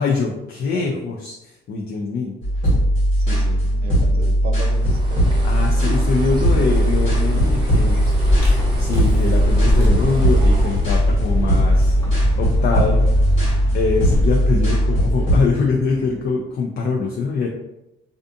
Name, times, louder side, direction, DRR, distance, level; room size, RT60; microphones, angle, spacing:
voice 1, 0.0-1.3 1.7-2.3 5.4-7.9 8.8-12.0 12.4-13.1 13.7-17.5, left 4 dB, 55° left, 0 dB, 0.4 m, -23 dB
sound 1, 2.4-15.4, equal, 80° left, 1.4 m, -18 dB
voice 2, 3.2-5.3 6.1-6.6, right 5 dB, 50° right, 5 dB, 0.4 m, -35 dB
Bird, 4.7-11.0, equal, 25° right, 0.8 m, -27 dB
Vehicle, 5.8-16.2, left 1 dB, 10° left, 0.9 m, -24 dB
2.4 x 2.4 x 2.5 m, 0.89 s
cardioid pair, 90°, 20 cm